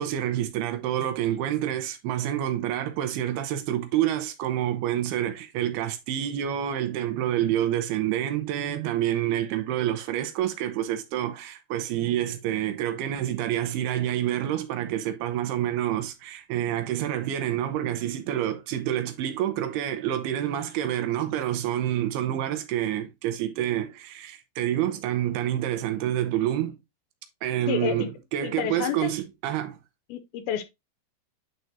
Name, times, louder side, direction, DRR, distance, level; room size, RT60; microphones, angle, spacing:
voice 1, 0.0-26.8 27.4-29.8, right 11 dB, 80° right, 2.6 m, -28 dB
voice 2, 27.7-28.1 28.4-29.1 30.1-30.6, left 10 dB, 80° left, 2.4 m, -29 dB
9.4 x 4.5 x 2.6 m
omnidirectional pair, 4.7 m